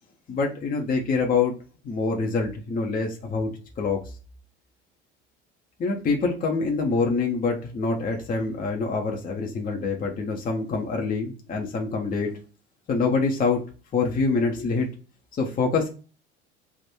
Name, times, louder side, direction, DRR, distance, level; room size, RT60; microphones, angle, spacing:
voice 1, 0.3-1.6 1.8-4.0 5.8-12.3 12.9-13.6 13.9-14.9 15.3-15.9, left 4 dB, 25° left, 1 dB, 0.8 m, -25 dB
3.5 x 2.5 x 4.3 m, 0.36 s
figure-of-eight pair, 70°, 35 cm